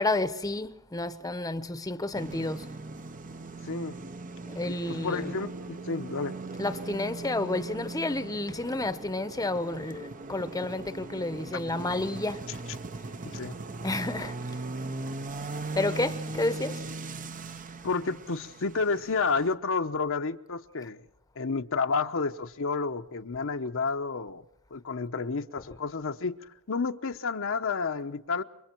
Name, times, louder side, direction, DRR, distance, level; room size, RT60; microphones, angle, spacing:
voice 1, 0.0-2.7 4.6-5.3 6.6-12.4 13.8-14.4 15.7-16.8, left 2 dB, 15° left, 0.9 m, -30 dB
sound 1, 2.1-19.5, right 3 dB, 40° right, 0.8 m, -39 dB
voice 2, 3.6-4.0 4.7-6.3 12.5-12.6 13.2-13.6 17.8-21.0 21.4-24.4 24.7-26.4 26.7-28.4, left 4 dB, 65° left, 0.9 m, -30 dB
29.0 x 23.5 x 4.6 m
head